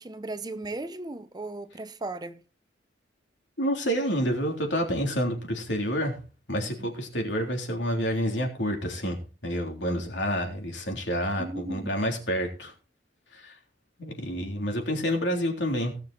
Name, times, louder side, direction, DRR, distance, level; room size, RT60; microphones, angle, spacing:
voice 1, 0.0-2.4 6.8-6.9 11.4-11.9, right 2 dB, 25° right, 0.7 m, -36 dB
voice 2, 3.6-6.2 6.5-12.7 13.3-13.6 14.0-16.0, equal, 75° left, 3.6 m, -28 dB
18.0 x 6.9 x 4.3 m
head